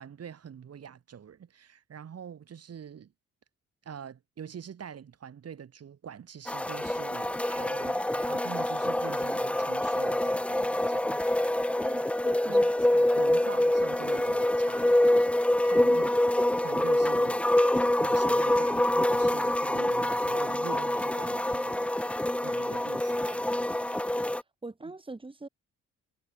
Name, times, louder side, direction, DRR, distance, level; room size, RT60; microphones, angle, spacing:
voice 1, 0.0-3.1 3.8-11.2 12.5-15.4 15.6-16.1 16.6-21.9 22.4-23.6, right 8 dB, 55° right, 7.7 m, -45 dB
sound 1, 6.5-24.4, left 1 dB, 5° left, 0.5 m, -26 dB
voice 2, 11.8-12.6 15.8-16.2 24.2-24.3 24.6-25.5, right 2 dB, 15° right, 3.3 m, -41 dB
cardioid pair, 90°, 30 cm